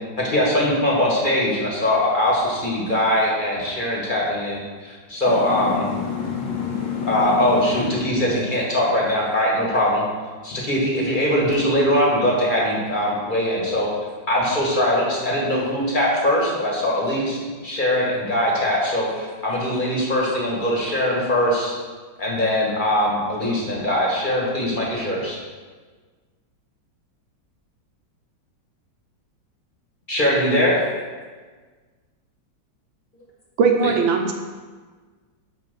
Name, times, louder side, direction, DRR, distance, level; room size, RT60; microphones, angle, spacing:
voice 1, 0.2-5.9 7.1-10.0 10.4-13.9 14.3-21.7 22.2-25.4 30.1-30.8, left 1 dB, 25° left, -4 dB, 1.7 m, -21 dB
voice 2, 5.3-8.1, left 6 dB, 70° left, -1 dB, 1.8 m, -28 dB
voice 3, 33.6-34.3, right 5 dB, 75° right, 3 dB, 1.5 m, -19 dB
5.8 x 5.1 x 6.7 m, 1.4 s
omnidirectional pair, 2.1 m